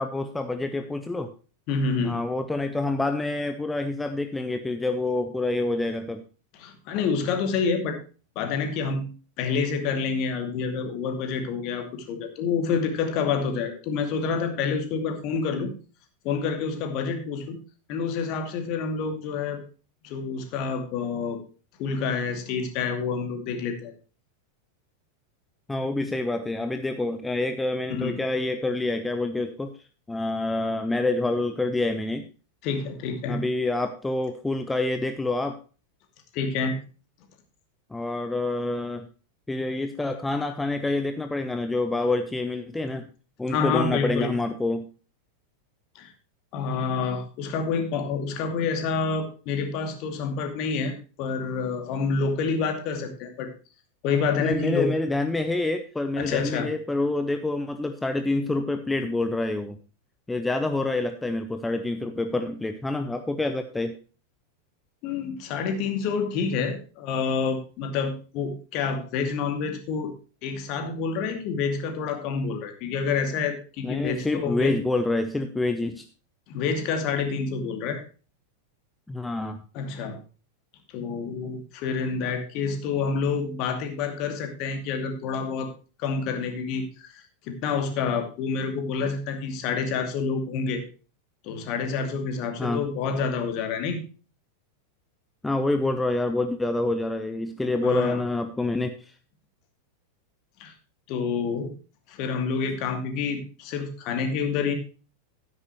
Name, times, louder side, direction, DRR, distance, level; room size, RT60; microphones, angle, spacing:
voice 1, 0.0-1.3 2.0-6.2 25.7-29.8 30.1-32.3 33.3-35.6 37.9-39.1 39.5-43.0 43.4-44.9 54.4-59.8 60.3-64.0 73.8-76.1 79.1-79.6 92.6-92.8 95.4-99.1, left 2 dB, 10° left, 8 dB, 0.7 m, -27 dB
voice 2, 1.7-2.2 6.5-8.0 8.4-9.0 9.4-15.7 16.2-17.6 17.9-19.6 20.0-21.4 21.8-23.9 27.9-28.2 32.6-33.4 36.3-36.8 43.5-44.3 45.9-46.1 46.5-53.5 54.0-54.9 56.2-56.7 65.0-70.1 70.4-74.7 76.5-78.0 79.7-80.2 80.9-85.7 86.0-90.8 91.4-94.0 97.8-98.2 100.6-100.7 101.1-101.7 102.1-104.7, left 5 dB, 40° left, 5 dB, 2.4 m, -28 dB
13.0 x 9.9 x 3.0 m, 0.35 s
figure-of-eight pair, 90°, 0 cm